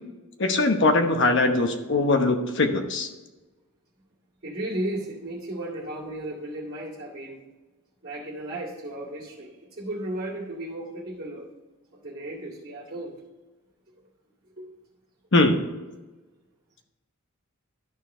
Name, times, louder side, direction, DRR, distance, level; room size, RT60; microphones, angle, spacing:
voice 1, 0.4-3.1 15.3-15.6, left 2 dB, 55° left, 5 dB, 1.0 m, -21 dB
voice 2, 4.4-7.4 8.0-11.5 11.9-13.1 14.6-14.7, right 1 dB, 45° right, -11 dB, 2.3 m, -34 dB
12.5 x 4.7 x 4.4 m, 1.2 s
head